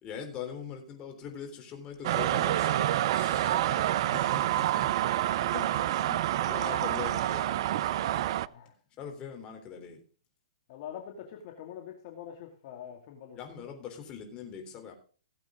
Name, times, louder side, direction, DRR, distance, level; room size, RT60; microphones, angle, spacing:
voice 1, 0.0-3.5 4.1-5.2 5.5-8.2 9.0-10.0 13.4-14.9, left 7 dB, 25° left, 3 dB, 3.7 m, -42 dB
sound 1, 2.0-8.5, right 13 dB, 50° right, 0.5 m, -28 dB
voice 2, 3.2-3.9 4.3-4.5 5.4-5.5 8.4-8.7 10.7-13.4, left 9 dB, 45° left, 3 dB, 2.4 m, -45 dB
17.5 x 8.2 x 3.8 m, 0.39 s
hypercardioid pair, 125°, 3 cm